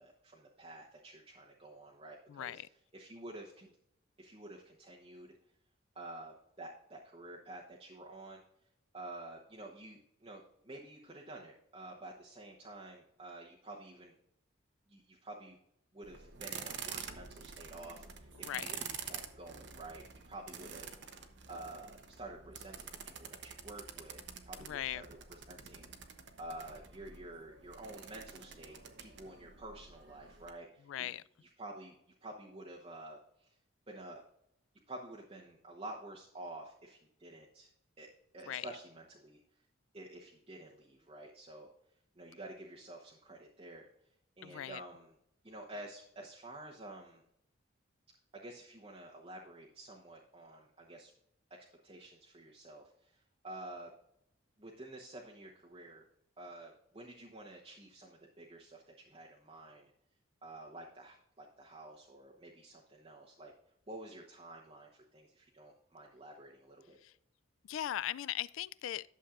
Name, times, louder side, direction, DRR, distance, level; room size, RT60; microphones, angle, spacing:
voice 1, 0.0-2.6 2.9-3.7 4.2-5.3 5.9-8.4 8.9-14.1 14.9-15.6 15.9-25.9 26.4-31.2 31.4-32.0 32.2-33.6 33.9-34.2 34.9-37.7 38.0-38.1 38.3-39.4 39.9-41.7 42.2-43.9 44.4-45.1 45.4-47.2 48.3-51.1 51.8-53.9 54.6-56.0 56.4-59.9 60.4-63.5 63.9-67.0, right 1 dB, 30° right, 1.0 m, -50 dB
voice 2, 2.3-2.7 18.4-18.8 24.6-25.0 30.9-31.2 38.5-38.7 44.4-44.8 67.0-67.1 67.7-69.0, left 12 dB, 80° left, 0.3 m, -39 dB
sound 1, 16.0-30.5, right 7 dB, 60° right, 0.9 m, -48 dB
11.5 x 7.2 x 2.5 m
head